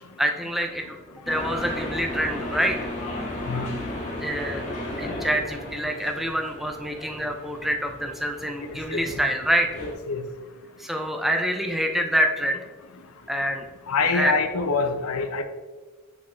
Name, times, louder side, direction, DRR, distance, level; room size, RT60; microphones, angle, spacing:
voice 1, 0.2-2.9 4.2-4.6 5.0-9.7 10.8-12.6 13.3-13.7 14.1-14.3, equal, ahead, 3 dB, 0.4 m, -26 dB
sound 1, 1.2-9.9, left 1 dB, 30° left, 1.6 m, -35 dB
voice 2, 9.8-10.2 13.9-15.4, left 4 dB, 75° left, 7 dB, 0.6 m, -25 dB
6.8 x 4.4 x 3.2 m, 1.3 s
head